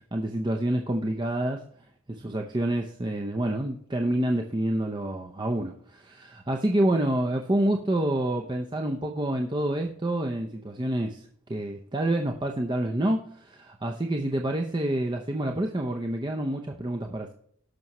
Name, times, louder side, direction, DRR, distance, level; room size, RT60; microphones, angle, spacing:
voice 1, 0.1-1.6 2.1-11.2 11.5-17.3, right 1 dB, 25° right, 3 dB, 0.7 m, -28 dB
18.0 x 6.2 x 3.0 m, 0.64 s
head